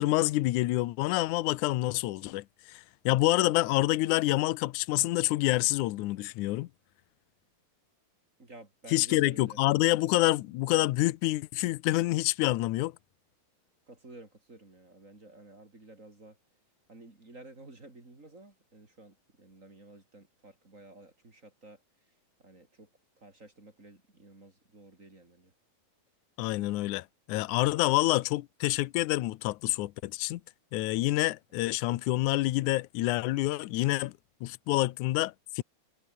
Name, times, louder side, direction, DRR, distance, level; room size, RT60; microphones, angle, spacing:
voice 1, 0.0-6.7 8.9-12.9 26.4-30.4 30.7-34.1 34.4-35.6, left 18 dB, 85° left, 1.7 m, -27 dB
voice 2, 8.4-9.6 13.9-16.4 16.9-21.8 22.4-22.9 23.2-25.5, right 2 dB, 20° right, 3.6 m, -52 dB
omnidirectional pair, 4.5 m